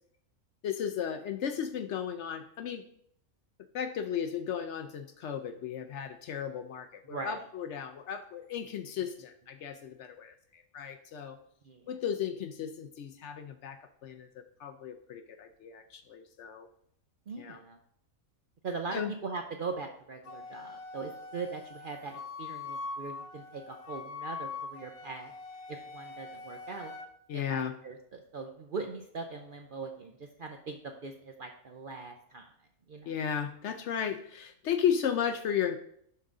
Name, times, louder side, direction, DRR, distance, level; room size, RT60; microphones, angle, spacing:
voice 1, 0.6-2.8 3.7-11.4 11.9-16.7 17.4-17.6 18.9-19.1 27.3-27.7 33.0-35.8, left 8 dB, 65° left, 9 dB, 0.8 m, -35 dB
voice 2, 7.1-7.5 11.6-11.8 17.3-17.8 18.6-25.3 25.7-26.9 27.3-32.5 32.9-33.1, right 4 dB, 55° right, 4 dB, 0.6 m, -40 dB
Wind instrument woodwind instrument, 20.3-27.1, left 4 dB, 90° left, 1.2 m, -43 dB
11.5 x 3.8 x 3.7 m, 0.68 s
omnidirectional pair, 1.5 m